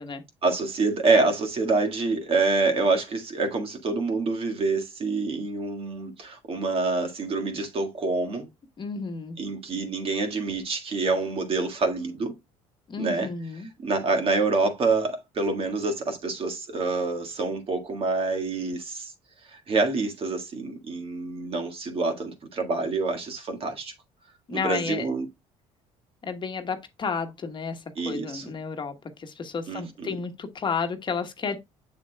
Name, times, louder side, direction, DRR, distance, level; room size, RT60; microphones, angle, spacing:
voice 1, 0.4-8.5 9.4-12.3 13.0-13.3 13.8-19.1 19.5-23.9 24.5-25.2 27.9-28.5 29.7-30.2, right 3 dB, 45° right, 1.8 m, -26 dB
voice 2, 8.8-9.4 12.9-13.7 24.5-25.1 26.2-31.6, left 5 dB, 35° left, 1.2 m, -32 dB
7.1 x 6.8 x 2.2 m
supercardioid pair, 90°, 13 cm